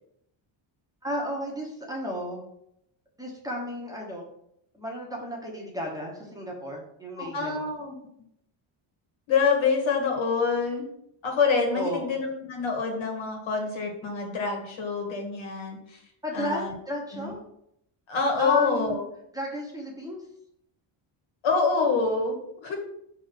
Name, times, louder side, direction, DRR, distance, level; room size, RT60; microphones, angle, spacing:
voice 1, 1.0-2.4 3.2-4.2 4.7-7.7 11.7-12.1 16.2-17.4 18.4-19.0 19.3-20.2, equal, 5° right, -2 dB, 1.0 m, -33 dB
voice 2, 7.2-7.9 9.3-10.9 11.2-16.0 16.3-16.7 17.1-17.3 18.1-19.0 21.4-22.8, left 5 dB, 65° left, 1 dB, 1.9 m, -26 dB
6.1 x 3.6 x 5.7 m, 0.76 s
cardioid pair, 175°, 49 cm